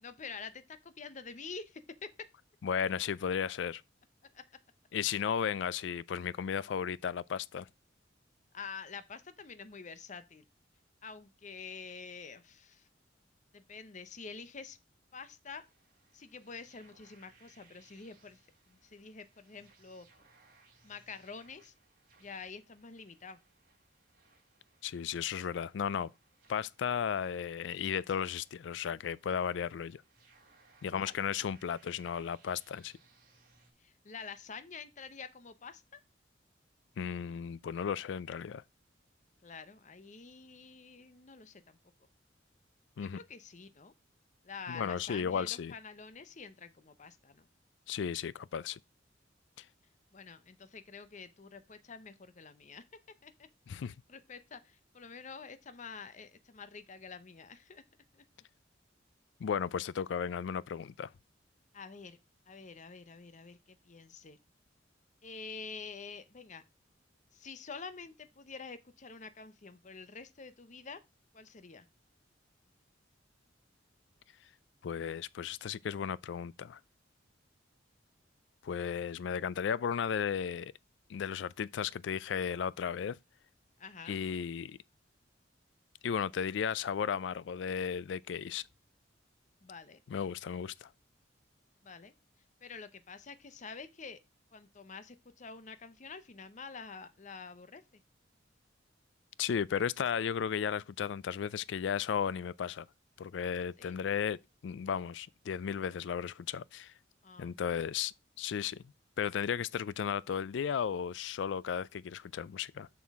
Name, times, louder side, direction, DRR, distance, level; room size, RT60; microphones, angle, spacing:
voice 1, 0.0-2.3 4.3-4.4 8.5-10.4 11.0-12.9 13.5-14.8 15.1-15.7 16.1-18.4 18.7-20.1 20.8-21.7 22.2-23.4 30.9-31.2 33.8-36.0 39.4-41.8 43.1-43.9 44.4-47.5 50.1-52.8 53.2-53.5 53.7-53.8 54.1-57.8 58.1-58.2 61.7-62.2 62.5-64.4 65.2-66.6 67.3-71.0 71.3-71.9 83.8-84.2 89.6-90.0 91.8-92.1 92.6-94.2 94.5-98.0 103.8-104.0 107.2-107.6, left 5 dB, 40° left, 0.7 m, -47 dB
voice 2, 2.6-3.8 4.9-7.7 24.8-26.1 26.5-30.0 30.8-32.9 37.0-38.6 43.0-43.2 44.7-45.7 47.9-48.8 49.6-49.7 53.7-54.0 59.4-61.1 74.8-76.8 78.6-80.7 81.1-83.2 84.1-84.8 86.0-88.6 90.1-90.9 99.4-102.9 103.2-106.9 107.4-108.8 109.2-112.9, left 7 dB, 65° left, 0.3 m, -34 dB
sound 1, 15.5-33.7, right 4 dB, 50° right, 3.6 m, -66 dB
7.3 x 6.2 x 3.5 m
head